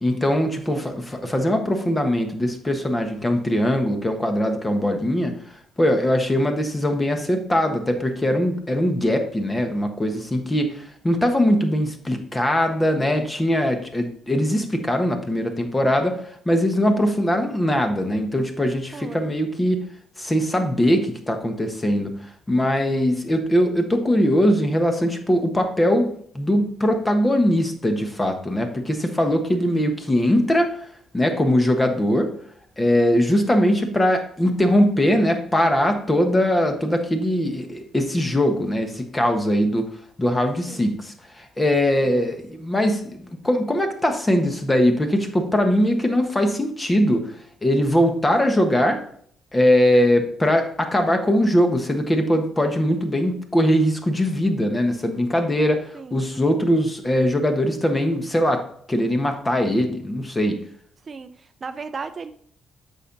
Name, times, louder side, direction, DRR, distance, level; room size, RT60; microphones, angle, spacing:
voice 1, 0.0-5.3 5.8-16.2 16.4-19.8 20.2-22.1 22.5-30.8 31.1-32.3 32.8-39.9 40.2-47.3 47.6-49.0 49.5-60.6, equal, 20° left, 5 dB, 1.4 m, -21 dB
voice 2, 18.9-19.2 40.7-40.9 41.9-42.1 55.9-56.2 61.1-62.3, right 5 dB, 40° right, 10 dB, 0.5 m, -36 dB
8.2 x 5.7 x 4.0 m, 0.62 s
cardioid pair, 90°, 0 cm